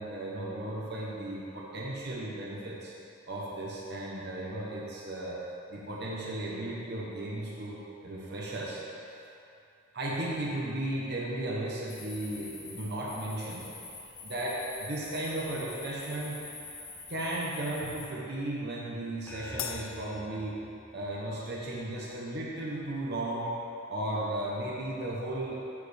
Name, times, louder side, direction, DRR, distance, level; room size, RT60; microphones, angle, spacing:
voice 1, 0.0-2.9 3.3-5.4 5.7-8.8 9.9-13.7 14.2-16.4 17.1-20.7 20.9-23.5 23.9-25.6, right 1 dB, 55° right, -4 dB, 1.0 m, -35 dB
sound 1, 11.9-18.1, left 3 dB, 40° left, 1.8 m, -46 dB
sound 2, 19.3-21.9, left 1 dB, 10° left, 0.7 m, -48 dB
Crash cymbal, 19.6-21.3, left 8 dB, 75° left, 0.5 m, -41 dB
11.0 x 4.9 x 3.4 m, 2.7 s
head